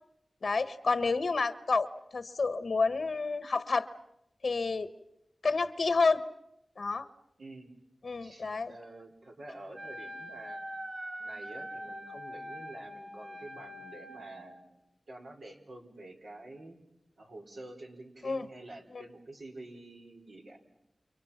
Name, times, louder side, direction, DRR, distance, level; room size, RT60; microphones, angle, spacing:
voice 1, 0.4-3.9 4.4-4.9 5.4-6.2 6.8-7.1 8.0-8.7 18.2-18.5, left 4 dB, 75° left, 13 dB, 1.0 m, -29 dB
voice 2, 7.4-7.7 8.2-10.8 11.2-14.8 15.1-16.8 17.2-20.6, right 1 dB, 85° right, 1 dB, 4.8 m, -48 dB
Wind instrument woodwind instrument, 9.7-14.5, equal, 60° right, 5.8 m, -43 dB
29.5 x 29.0 x 5.8 m, 0.83 s
cardioid pair, 50°, 0 cm